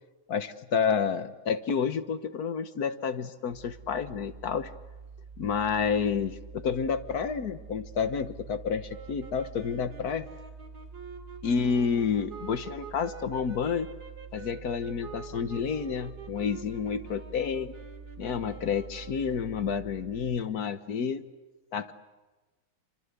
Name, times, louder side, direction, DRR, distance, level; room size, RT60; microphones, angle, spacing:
voice 1, 0.3-4.7 5.4-10.3 11.4-13.9 14.3-17.7 18.2-21.2 21.7-21.9, left 6 dB, 55° left, 11 dB, 1.5 m, -30 dB
sound 1, 3.5-20.4, right 5 dB, 30° right, 2.2 m, -47 dB
sound 2, 8.9-19.6, right 5 dB, 50° right, 3.0 m, -47 dB
28.5 x 25.5 x 8.2 m, 1.2 s
omnidirectional pair, 2.2 m